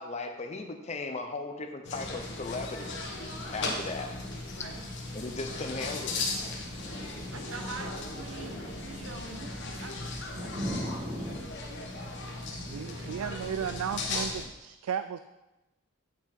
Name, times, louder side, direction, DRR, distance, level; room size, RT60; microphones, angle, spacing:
voice 1, 0.0-2.9 3.5-4.1 5.1-6.2, left 3 dB, 30° left, 5 dB, 0.7 m, -37 dB
sound 1, 1.8-14.5, left 2 dB, 55° left, 1.3 m, -37 dB
sound 2, 2.5-11.4, equal, 30° right, 1.5 m, -43 dB
voice 2, 7.3-10.2 13.0-13.1, right 4 dB, 65° right, 6 dB, 0.9 m, -44 dB
voice 3, 12.5-15.2, right 8 dB, 85° right, 11 dB, 0.3 m, -35 dB
8.2 x 6.3 x 4.4 m, 1.0 s
head